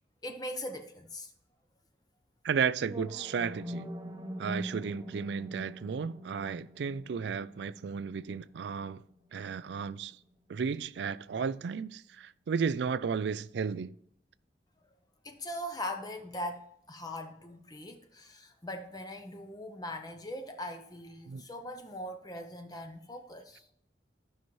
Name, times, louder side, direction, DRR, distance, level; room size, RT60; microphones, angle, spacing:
voice 1, 0.2-1.3 15.2-16.6 16.9-23.7, left 1 dB, 20° left, 0.7 m, -40 dB
voice 2, 2.4-3.9 4.4-9.0 9.3-10.2 10.5-14.0 21.3-21.4, right 6 dB, 80° right, 0.4 m, -33 dB
sound 1, 2.8-10.8, equal, 20° right, 0.7 m, -44 dB
14.0 x 5.8 x 3.1 m
head